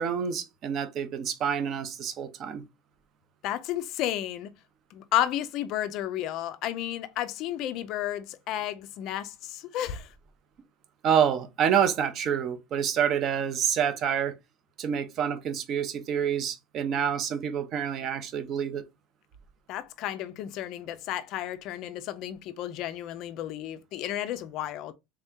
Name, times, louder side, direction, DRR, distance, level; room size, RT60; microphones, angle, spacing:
voice 1, 0.0-2.6 11.0-14.3 14.8-18.8, right 8 dB, 30° right, 0.5 m, -27 dB
voice 2, 3.4-4.5 4.9-10.1 19.7-24.9, left 12 dB, 40° left, 0.4 m, -32 dB
3.5 x 2.7 x 3.5 m
cardioid pair, 180°, 0 cm